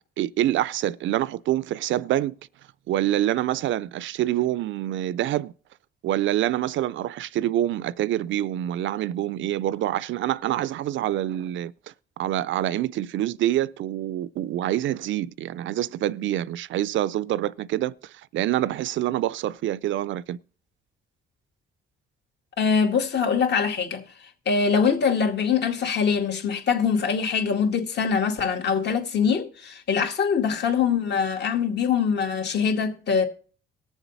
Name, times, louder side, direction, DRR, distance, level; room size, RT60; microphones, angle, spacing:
voice 1, 0.2-2.3 2.9-5.5 6.0-11.7 12.2-20.4, right 13 dB, 75° right, 0.5 m, -26 dB
voice 2, 22.6-24.0 24.5-33.2, left 6 dB, 60° left, 2.2 m, -23 dB
18.5 x 7.2 x 4.1 m
cardioid pair, 90°, 20 cm